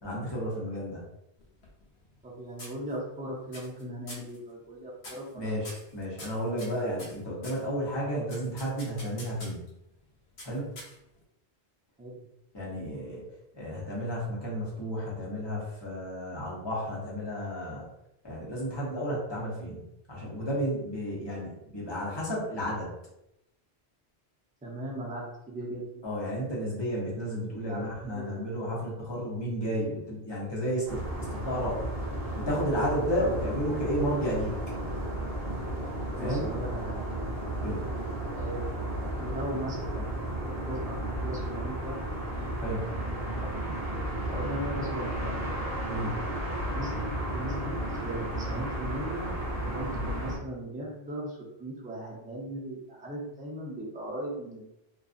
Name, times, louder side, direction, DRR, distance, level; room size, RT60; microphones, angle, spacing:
voice 1, 0.0-1.1 5.3-9.7 10.4-10.7 12.5-13.2 13.5-17.8 18.2-19.8 20.1-22.9 26.0-31.8 32.3-34.5 36.2-36.5 37.6-37.9 42.6-42.8 45.9-46.2 49.9-50.0, equal, 25° left, -6 dB, 0.9 m, -32 dB
sound 1, 1.4-2.3 2.6-3.2 3.5-3.8 4.1-4.4 5.0-5.3 5.6-7.6 8.3-9.7 10.4-11.2, left 1 dB, 85° left, 1.1 m, -46 dB
voice 2, 2.2-5.7 12.0-12.2 24.6-26.0 27.7-28.4 36.1-37.0 37.5-37.8 38.3-40.2 40.4-42.0 43.4-43.8 44.3-45.4 46.7-49.3 49.7-54.7, right 1 dB, 10° right, -3 dB, 0.4 m, -38 dB
Cologne at Night General Ambience (Surround), 30.9-50.4, right 1 dB, 30° right, 0.8 m, -33 dB
2.5 x 2.4 x 2.5 m, 0.85 s
omnidirectional pair, 1.1 m